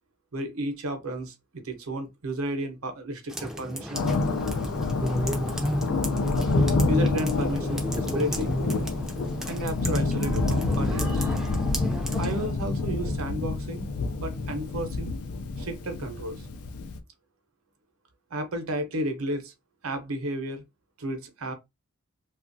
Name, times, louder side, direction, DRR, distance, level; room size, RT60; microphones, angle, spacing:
voice 1, 0.3-4.0 6.9-8.5 9.4-11.4 12.2-13.9 14.2-15.2 15.6-16.5 18.3-19.5 19.8-20.6 21.0-21.5, right 1 dB, 80° right, 0.8 m, -32 dB
sound 1, 3.3-12.5, equal, ahead, 0.4 m, -32 dB
Thunder, 3.9-17.0, left 3 dB, 90° left, 0.4 m, -28 dB
3.0 x 2.4 x 2.5 m
head